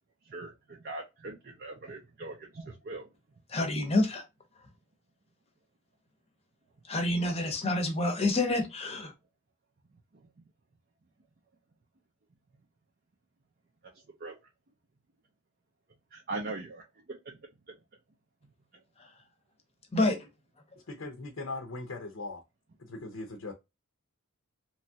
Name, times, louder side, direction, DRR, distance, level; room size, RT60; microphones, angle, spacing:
voice 1, 0.3-3.1 14.2-14.3 16.1-16.8 17.1-17.2 17.7-17.8, right 2 dB, 45° right, 0.5 m, -40 dB
voice 2, 3.5-4.2 6.9-9.1 19.0-19.1 19.9-20.3, left 2 dB, 30° left, 0.7 m, -28 dB
voice 3, 20.9-22.4 22.9-23.5, left 2 dB, 65° left, 0.6 m, -39 dB
3.0 x 2.3 x 2.6 m
head